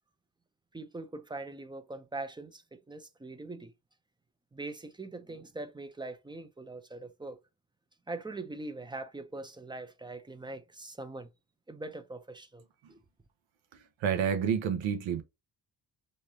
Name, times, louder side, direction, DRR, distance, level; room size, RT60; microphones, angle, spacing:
voice 1, 0.7-3.7 4.5-7.4 8.1-11.3 11.7-12.6 12.9-13.0, right 2 dB, 10° right, 0.5 m, -42 dB
voice 2, 14.0-15.2, right 7 dB, 80° right, 0.7 m, -29 dB
3.2 x 2.6 x 2.7 m
cardioid pair, 85°, 46 cm